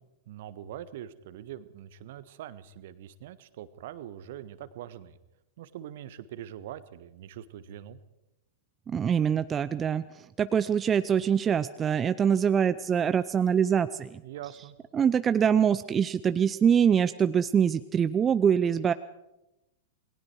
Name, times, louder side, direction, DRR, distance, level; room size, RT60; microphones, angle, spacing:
voice 1, 0.3-5.2 5.6-8.0 14.2-14.8, right 11 dB, 55° right, 14 dB, 1.4 m, -43 dB
voice 2, 8.9-10.0 10.4-14.2 14.9-18.9, right 8 dB, 20° right, 13 dB, 0.6 m, -24 dB
28.0 x 21.0 x 4.7 m, 0.93 s
figure-of-eight pair, 95°, 0 cm